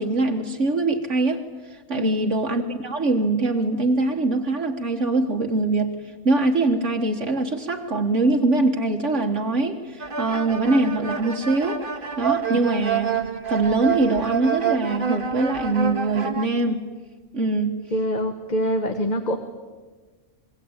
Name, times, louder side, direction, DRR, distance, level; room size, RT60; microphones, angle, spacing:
voice 1, 0.0-1.4 1.7-5.9 6.2-11.8 12.2-13.2 13.5-16.9 17.3-17.8, right 2 dB, 75° right, 2 dB, 2.0 m, -23 dB
voice 2, 1.9-2.3 12.5-12.6 17.9-19.4, equal, 35° left, 6 dB, 1.7 m, -25 dB
sound 1, 10.0-16.5, right 7 dB, 45° right, 1.8 m, -28 dB
26.0 x 22.5 x 8.9 m, 1.3 s
omnidirectional pair, 1.3 m